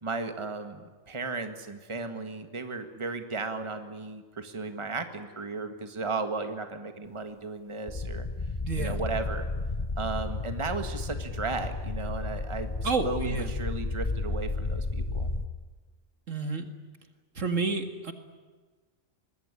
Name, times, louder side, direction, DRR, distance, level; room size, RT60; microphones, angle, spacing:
voice 1, 0.0-8.3 8.8-9.5 10.0-12.7 13.0-15.3, right 3 dB, 20° right, 7 dB, 1.8 m, -35 dB
sound 1, 7.9-15.5, left 3 dB, 30° left, 1.1 m, -32 dB
voice 2, 8.6-9.0 12.8-13.5 16.3-16.7 17.3-18.1, right 3 dB, 65° right, 7 dB, 2.4 m, -30 dB
25.0 x 21.0 x 9.8 m, 1.4 s
omnidirectional pair, 1.4 m